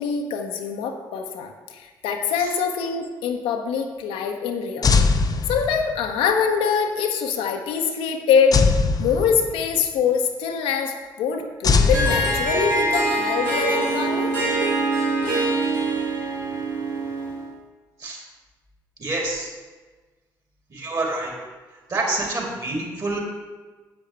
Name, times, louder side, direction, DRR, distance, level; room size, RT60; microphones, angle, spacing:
voice 1, 0.0-4.9 5.5-8.6 9.0-14.3, left 6 dB, 65° left, 3 dB, 0.9 m, -24 dB
sound 1, 4.8-6.1 8.5-9.8 11.6-12.9, left 4 dB, 40° left, 0.7 m, -21 dB
Harp, 11.7-17.5, right 2 dB, 80° right, 1.5 m, -24 dB
voice 2, 19.0-19.5 20.7-21.3 21.9-23.2, right 2 dB, 40° right, -2 dB, 3.2 m, -27 dB
10.5 x 8.2 x 3.3 m, 1.3 s
figure-of-eight pair, 40°, 10 cm